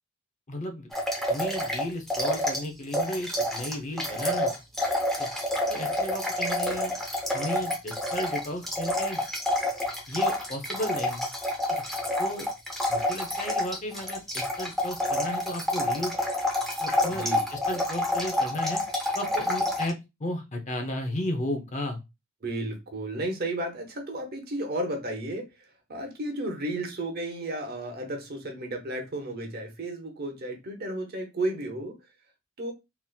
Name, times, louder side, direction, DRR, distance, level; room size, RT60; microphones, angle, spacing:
voice 1, 0.5-0.9 1.3-4.5 5.2-5.3 5.7-6.9 7.3-9.2 10.1-11.3 11.7-11.8 12.2-12.5 12.9-16.1 16.8-17.2 17.5-18.8 19.1-19.9 20.2-22.0, left 1 dB, 35° left, 0.7 m, -34 dB
sound 1, 0.9-2.7 2.9-19.9, left 1 dB, ahead, 0.8 m, -28 dB
voice 2, 17.1-17.4 22.4-32.0 32.6-32.7, right 1 dB, 50° right, 0.9 m, -33 dB
3.9 x 2.7 x 2.3 m
head